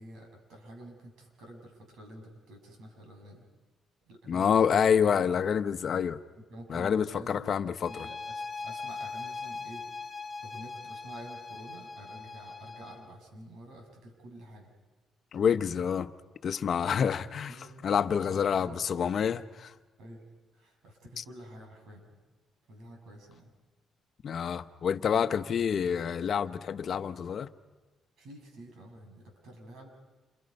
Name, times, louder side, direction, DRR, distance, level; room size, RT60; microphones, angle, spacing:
voice 1, 0.0-3.5 4.1-4.8 6.4-10.0 10.4-14.7 17.5-17.8 18.2-18.8 20.0-20.2 20.5-22.2 22.7-23.5 28.2-29.9, right 1 dB, 80° right, 7.2 m, -49 dB
voice 2, 4.3-6.2 6.7-8.1 15.3-16.1 16.4-19.7 21.2-21.3 24.2-27.5, left 7 dB, 55° left, 1.0 m, -28 dB
sound 1, 7.8-13.1, left 4 dB, 30° left, 2.5 m, -40 dB
29.0 x 28.5 x 5.5 m
cardioid pair, 90°, 0 cm